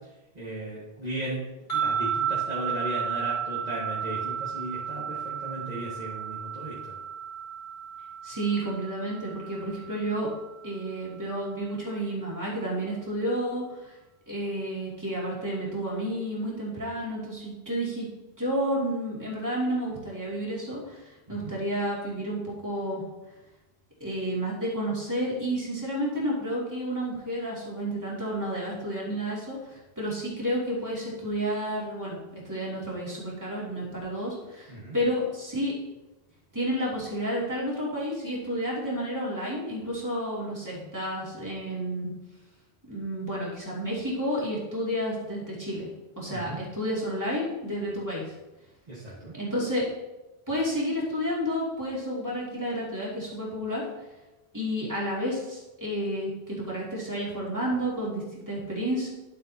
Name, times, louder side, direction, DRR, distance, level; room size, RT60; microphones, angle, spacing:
voice 1, 0.3-1.4 1.7-6.7 21.3-21.5 34.7-34.9 46.3-46.6 48.9-49.3, right 1 dB, 40° right, -9 dB, 1.9 m, -36 dB
sound 1, 1.7-11.0, right 7 dB, 45° left, 3.1 m, -33 dB
voice 2, 8.2-10.3 10.6-13.9 14.3-18.1 18.4-23.0 24.0-32.2 32.4-35.7 36.5-42.1 42.9-45.9 46.2-48.3 49.3-49.9 50.5-53.8 54.5-59.1, equal, 15° right, -7 dB, 2.8 m, -31 dB
12.0 x 7.8 x 2.9 m, 1.1 s
omnidirectional pair, 1.1 m